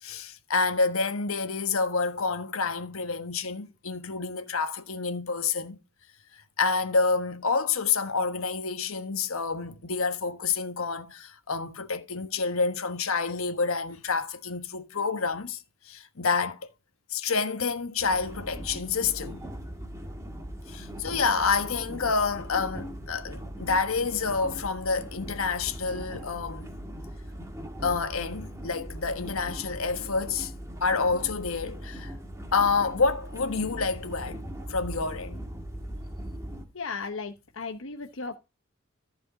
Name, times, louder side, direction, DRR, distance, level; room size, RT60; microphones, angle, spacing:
voice 1, 0.0-5.8 6.3-15.6 15.8-16.7 17.1-19.4 20.7-26.7 27.8-30.5 30.8-32.1 32.5-34.4 34.7-35.4, left 4 dB, 85° left, 1.2 m, -28 dB
sound 1, 18.0-36.7, equal, 15° right, 1.7 m, -40 dB
voice 2, 36.7-38.4, left 4 dB, 65° left, 0.9 m, -35 dB
14.5 x 4.9 x 3.9 m
head